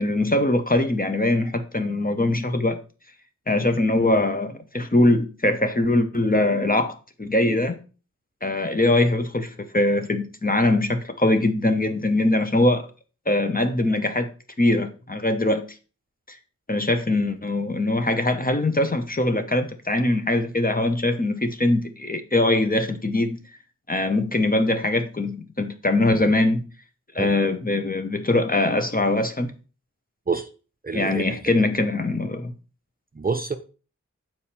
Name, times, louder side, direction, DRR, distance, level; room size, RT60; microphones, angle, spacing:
voice 1, 0.0-2.8 3.5-7.8 8.4-12.9 13.3-14.3 14.6-15.6 16.3-16.4 16.7-23.4 23.9-26.6 27.1-29.5 30.9-32.5, left 2 dB, 30° left, 0.9 m, -22 dB
voice 2, 30.8-31.4 33.1-33.6, right 4 dB, 30° right, 0.6 m, -27 dB
7.0 x 4.6 x 4.3 m
wide cardioid pair, 60°, 30 cm